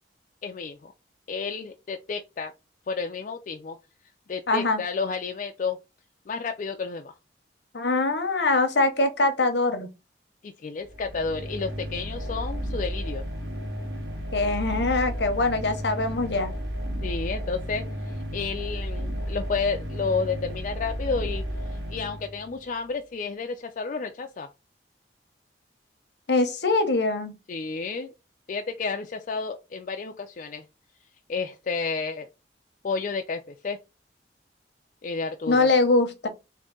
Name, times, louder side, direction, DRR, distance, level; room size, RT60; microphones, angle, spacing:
voice 1, 0.4-0.9 1.3-2.5 2.9-3.8 4.3-5.8 6.3-7.1 10.4-13.2 17.0-21.4 21.9-24.5 27.5-28.1 28.5-30.7 31.3-32.3 32.8-33.8 35.0-35.7, left 4 dB, 45° left, 0.4 m, -31 dB
voice 2, 4.5-4.8 7.7-9.9 14.3-16.5 26.3-27.3 35.5-36.3, left 3 dB, 70° left, 0.9 m, -23 dB
sound 1, 10.8-22.7, equal, 85° right, 1.7 m, -33 dB
3.7 x 2.7 x 3.7 m
head